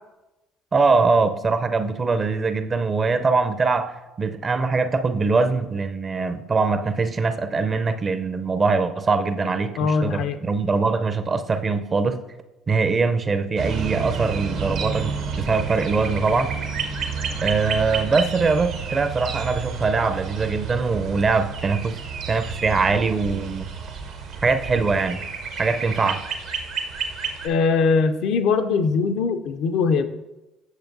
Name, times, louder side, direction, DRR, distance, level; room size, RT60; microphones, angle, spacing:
voice 1, 0.7-12.2 12.7-16.5 17.4-23.7 24.4-25.2 25.6-26.2, right 4 dB, 35° right, 10 dB, 0.5 m, -22 dB
voice 2, 9.8-10.4 27.4-30.1, left 5 dB, 65° left, 9 dB, 0.4 m, -21 dB
sound 1, 13.6-27.5, right 5 dB, 70° right, 0.9 m, -30 dB
8.1 x 6.5 x 2.6 m, 1.0 s
hypercardioid pair, 60°, 0 cm